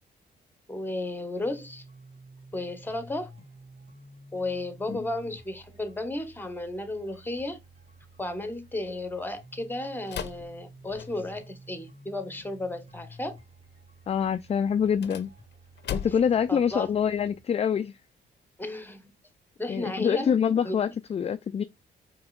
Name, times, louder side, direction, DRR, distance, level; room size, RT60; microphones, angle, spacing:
voice 1, 0.7-1.8 2.5-3.3 4.3-7.6 8.2-13.4 16.5-16.9 18.6-19.1 19.6-20.4 20.6-20.8, left 2 dB, 10° left, 1.0 m, -33 dB
sound 1, 1.4-17.4, right 1 dB, 30° right, 2.3 m, -51 dB
sound 2, 10.1-11.5 14.8-16.4, left 8 dB, 65° left, 0.6 m, -38 dB
voice 2, 14.1-15.3 15.9-18.0 19.7-21.6, left 7 dB, 35° left, 0.3 m, -25 dB
4.8 x 3.0 x 2.3 m
cardioid pair, 65°, 19 cm